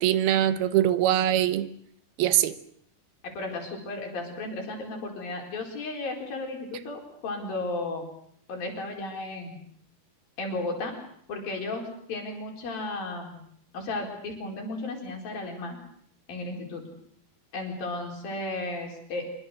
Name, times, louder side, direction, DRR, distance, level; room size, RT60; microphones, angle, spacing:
voice 1, 0.0-1.7 2.2-2.5, right 12 dB, 80° right, 3.0 m, -22 dB
voice 2, 3.2-8.1 8.5-9.6 10.4-10.9 11.3-13.4 13.7-15.8 16.3-16.8 17.5-19.3, left 2 dB, 70° left, 6.3 m, -34 dB
25.0 x 23.5 x 6.7 m
omnidirectional pair, 4.3 m